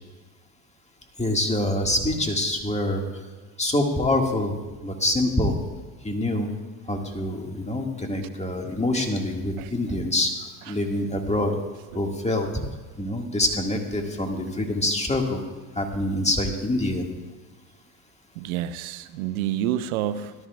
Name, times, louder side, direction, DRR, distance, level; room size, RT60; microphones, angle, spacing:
voice 1, 1.2-3.0 3.6-4.5 4.8-5.5 6.0-6.5 6.9-11.5 11.9-12.5 13.0-15.4 15.8-17.1, left 1 dB, 15° left, 2 dB, 2.0 m, -25 dB
voice 2, 18.3-20.3, right 11 dB, 80° right, 14 dB, 0.7 m, -28 dB
17.5 x 12.5 x 2.4 m, 1.4 s
hypercardioid pair, 70°, 42 cm